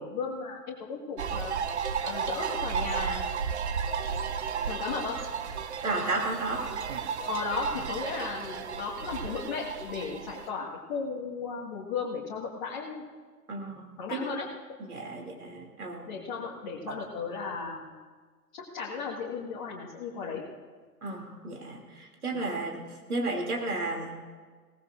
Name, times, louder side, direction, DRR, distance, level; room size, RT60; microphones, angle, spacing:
voice 1, 0.0-1.5 2.0-3.4 4.7-5.2 7.3-13.1 14.0-14.5 16.1-18.0 18.5-20.4 22.3-22.6, left 5 dB, 30° left, -5 dB, 1.9 m, -35 dB
sound 1, 1.2-10.5, right 6 dB, 45° right, 0.8 m, -33 dB
voice 2, 5.8-6.7 13.5-14.2 14.8-16.1 21.0-24.1, right 2 dB, 65° right, 1 dB, 3.1 m, -33 dB
22.5 x 18.0 x 2.6 m, 1.5 s
figure-of-eight pair, 125°, 47 cm